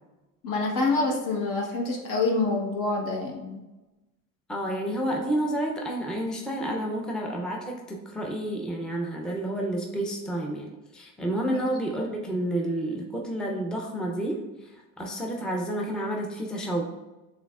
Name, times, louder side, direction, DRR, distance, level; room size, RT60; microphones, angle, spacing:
voice 1, 0.4-3.6 11.5-11.6, left 3 dB, 60° left, 0 dB, 1.2 m, -26 dB
voice 2, 4.5-14.4 15.0-16.8, right 1 dB, ahead, 0 dB, 0.5 m, -30 dB
6.5 x 3.4 x 2.4 m, 1.1 s
cardioid pair, 110°, 36 cm